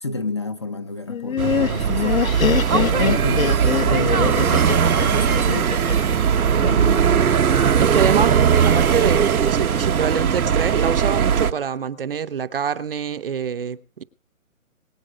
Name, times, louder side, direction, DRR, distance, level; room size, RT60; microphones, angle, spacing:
voice 1, 0.0-2.2 2.9-4.7 5.0-5.7 6.5-7.3, left 2 dB, 20° left, 0.6 m, -30 dB
Laughter, 1.1-6.1, left 8 dB, 75° left, 1.6 m, -23 dB
sound 1, 1.4-11.5, right 7 dB, 90° right, 1.1 m, -19 dB
voice 2, 7.8-14.0, right 7 dB, 40° right, 0.8 m, -25 dB
22.5 x 8.4 x 5.1 m
hypercardioid pair, 165°, 42 cm